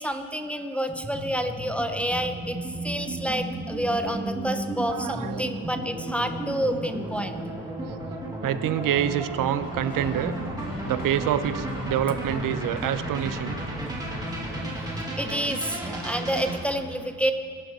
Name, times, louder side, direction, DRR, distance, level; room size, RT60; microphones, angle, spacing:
voice 1, 0.0-7.5 14.9-17.3, equal, 5° left, 6 dB, 0.5 m, -29 dB
sound 1, 0.9-16.6, right 2 dB, 10° right, 1.8 m, -34 dB
voice 2, 4.9-5.4 8.4-10.3 10.8-13.6 15.1-15.2, right 10 dB, 85° right, 12 dB, 0.7 m, -27 dB
sound 2, 9.6-14.8, left 1 dB, 80° left, 3.3 m, -37 dB
21.0 x 12.0 x 4.1 m, 2.2 s
cardioid pair, 160°, 32 cm